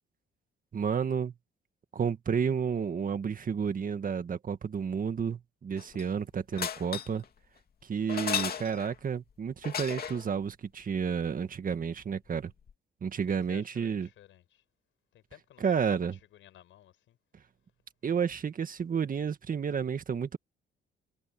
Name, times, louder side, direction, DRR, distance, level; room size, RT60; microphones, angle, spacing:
voice 1, 0.7-1.3 1.9-7.2 7.8-12.5 13.0-14.1 15.6-16.2 18.0-20.4, right 6 dB, 45° right, 1.9 m, -31 dB
sound 1, 5.8-6.2 6.5-7.2 8.1-9.0 9.6-10.3 12.4-12.5 12.7-12.8, left 8 dB, 50° left, 2.6 m, -35 dB
voice 2, 13.3-14.6 15.1-17.2, left 12 dB, 80° left, 5.2 m, -54 dB
cardioid pair, 90°, 20 cm